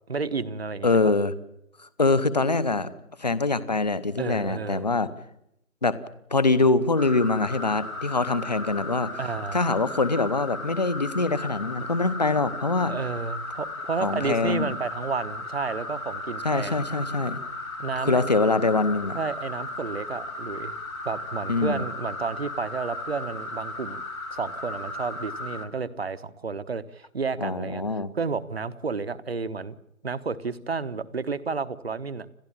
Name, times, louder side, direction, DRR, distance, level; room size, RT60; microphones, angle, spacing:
voice 1, 0.1-1.1 4.2-4.9 9.2-9.6 11.8-11.9 12.9-16.8 17.8-18.2 19.2-20.8 21.0-24.0 24.3-27.8 28.1-29.8 30.0-32.3, right 4 dB, 50° right, 14 dB, 1.2 m, -31 dB
voice 2, 0.8-1.3 1.8-2.9 3.2-5.1 5.8-6.0 6.3-9.1 9.5-12.9 14.0-14.7 16.4-17.4 18.0-19.2 21.5-21.8 27.4-28.1, left 3 dB, 30° left, 15 dB, 0.9 m, -24 dB
sound 1, 7.0-25.7, left 2 dB, 90° left, 4.0 m, -36 dB
29.5 x 12.5 x 8.8 m, 0.78 s
figure-of-eight pair, 170°, 41 cm